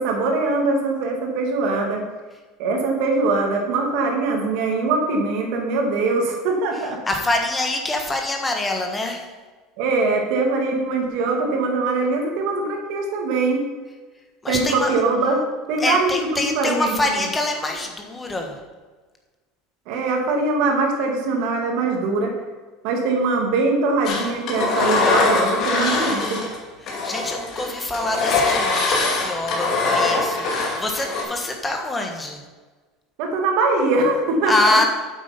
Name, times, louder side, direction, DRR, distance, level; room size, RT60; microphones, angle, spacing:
voice 1, 0.0-2.0 2.6-7.0 9.8-13.6 14.5-15.4 15.7-16.1 16.4-16.9 19.9-22.3 22.8-26.4 33.2-34.8, right 3 dB, 65° right, 2 dB, 2.3 m, -22 dB
voice 2, 7.1-9.2 14.4-14.9 15.8-18.5 26.8-32.4 34.5-34.8, left 2 dB, 10° left, 3 dB, 1.4 m, -25 dB
Engine, 24.0-26.6 26.9-31.2, left 3 dB, 40° left, 2.5 m, -22 dB
8.5 x 8.0 x 5.3 m, 1.3 s
cardioid pair, 155°, 0 cm